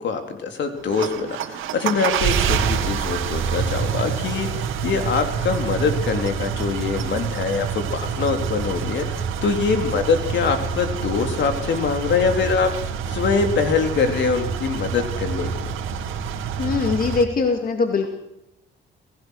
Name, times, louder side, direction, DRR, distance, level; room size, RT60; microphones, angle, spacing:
voice 1, 0.0-15.5, left 5 dB, 65° left, 6 dB, 3.6 m, -24 dB
sound 1, 0.8-17.3, right 7 dB, 85° right, 2.2 m, -27 dB
voice 2, 16.6-18.1, left 4 dB, 45° left, 5 dB, 2.5 m, -21 dB
27.5 x 18.0 x 6.6 m, 0.85 s
cardioid pair, 90°, 20 cm